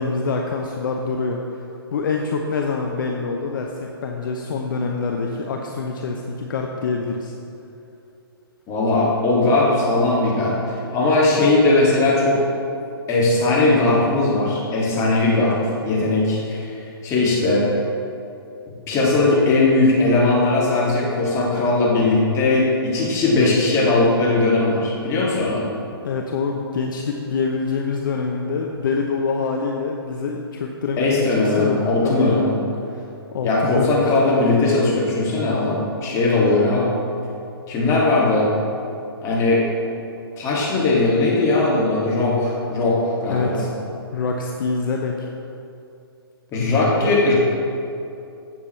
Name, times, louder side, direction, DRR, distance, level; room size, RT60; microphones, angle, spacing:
voice 1, 0.0-1.6 1.9-7.3 26.0-32.4 32.9-34.4 43.3-43.7 44.1-45.3, left 4 dB, 55° left, 1 dB, 0.8 m, -25 dB
voice 2, 8.7-12.4 13.1-15.6 15.8-16.7 17.0-17.6 18.9-25.7 31.0-32.5 33.4-36.9 37.7-38.5 39.2-39.6 40.4-43.6 46.5-47.3, left 2 dB, 25° left, -6 dB, 2.4 m, -19 dB
15.5 x 7.2 x 3.2 m, 2.7 s
figure-of-eight pair, 125°, 13 cm